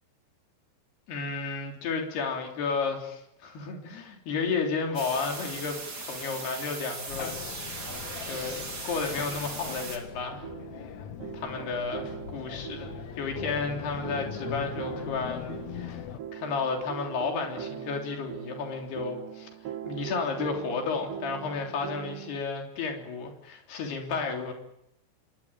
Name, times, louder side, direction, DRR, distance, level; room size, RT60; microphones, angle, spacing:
voice 1, 1.1-7.4 7.7-7.9 8.3-10.5 11.3-16.0 16.3-19.5 19.9-24.5, left 4 dB, 60° left, 3 dB, 5.3 m, -32 dB
sound 1, 4.9-10.0, right 3 dB, 25° right, 3.1 m, -38 dB
sound 2, 7.1-16.2, left 9 dB, 80° left, 1.6 m, -40 dB
sound 3, 10.1-22.4, right 9 dB, 65° right, 4.0 m, -41 dB
26.0 x 22.5 x 8.9 m, 0.83 s
omnidirectional pair, 5.4 m